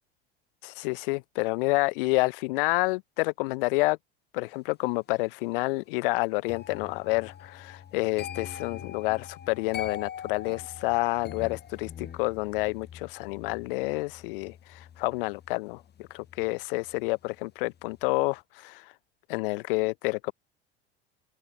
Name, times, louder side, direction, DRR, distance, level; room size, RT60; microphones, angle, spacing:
voice 1, 0.6-4.0 4.3-18.8 19.3-20.3, left 24 dB, 55° left, 3.0 m, -29 dB
sound 1, 6.5-17.4 17.7-18.1, left 9 dB, 30° left, 7.4 m, -43 dB
open air
figure-of-eight pair, 70°, 32 cm